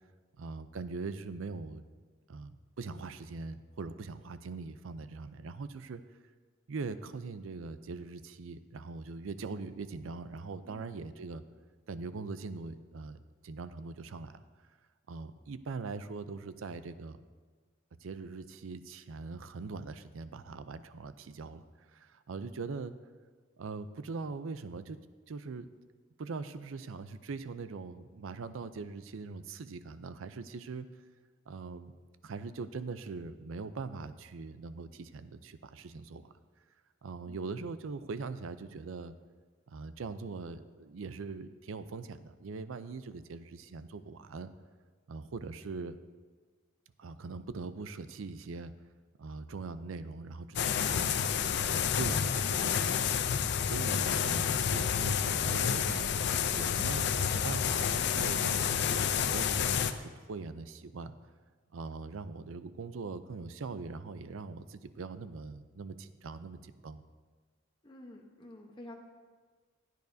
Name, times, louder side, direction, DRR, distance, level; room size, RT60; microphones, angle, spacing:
voice 1, 0.4-1.8 2.3-6.0 6.7-11.4 11.9-14.4 15.1-17.2 18.0-21.6 21.9-22.9 23.6-25.0 25.3-25.7 26.2-30.9 31.5-31.9 32.2-36.3 37.0-39.1 39.7-44.5 45.1-46.0 47.0-48.7 49.2-51.2 51.7-53.2 53.6-56.1 56.6-61.1 61.7-67.0, right 4 dB, 85° right, 13 dB, 0.5 m, -41 dB
voice 2, 10.6-11.0 37.2-37.4 67.8-68.9, left 1 dB, 25° left, 0 dB, 0.9 m, -50 dB
sound 1, 50.6-59.9, left 7 dB, 60° left, 0.5 m, -29 dB
15.5 x 9.3 x 2.7 m, 1.5 s
head